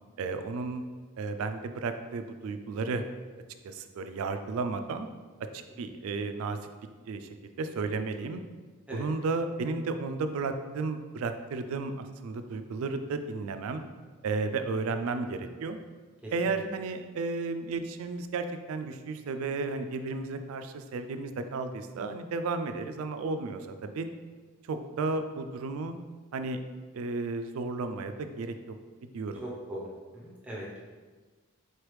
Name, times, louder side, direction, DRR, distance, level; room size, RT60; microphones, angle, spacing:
voice 1, 0.2-0.8 1.2-3.0 3.6-5.1 5.5-6.6 7.1-8.4 8.9-13.8 14.2-15.8 16.3-24.1 24.6-25.9 26.3-26.6 26.9-28.8 29.0-29.4, right 3 dB, 75° right, 8 dB, 0.3 m, -33 dB
voice 2, 29.4-30.8, equal, 5° right, -5 dB, 0.5 m, -40 dB
4.2 x 3.3 x 3.1 m, 1.4 s
head